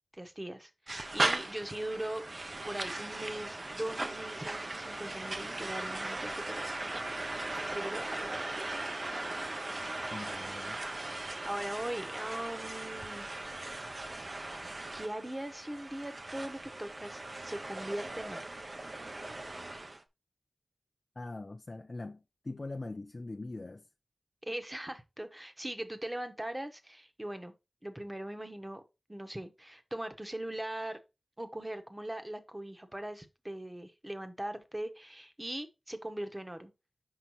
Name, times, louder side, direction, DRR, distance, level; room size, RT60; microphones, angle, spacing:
voice 1, 0.1-2.2 2.7-7.1 7.7-8.6 11.4-13.3 14.9-18.5 24.4-27.5 27.8-28.8 29.1-31.0 31.4-36.7, right 1 dB, 20° right, 1.1 m, -40 dB
sound 1, 0.9-20.0, right 2 dB, 45° right, 0.7 m, -38 dB
voice 2, 10.1-10.8 21.2-23.8, left 2 dB, 45° left, 0.5 m, -42 dB
5.6 x 5.6 x 3.1 m
wide cardioid pair, 65°, 0 cm